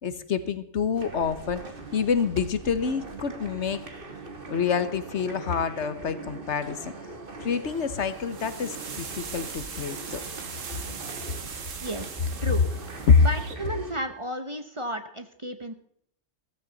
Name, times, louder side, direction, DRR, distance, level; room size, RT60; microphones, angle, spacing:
voice 1, 0.0-1.6 1.9-3.8 4.5-6.9 7.4-10.2 13.1-13.2, left 6 dB, 65° left, 12 dB, 1.3 m, -26 dB
sound 1, 1.0-13.9, right 3 dB, 45° right, 1.7 m, -42 dB
sound 2, 7.6-13.5, right 5 dB, 85° right, 1.7 m, -40 dB
voice 2, 11.8-12.6 13.2-15.7, right 1 dB, 25° right, 8 dB, 0.9 m, -33 dB
15.5 x 14.0 x 4.0 m, 0.65 s
omnidirectional pair, 1.3 m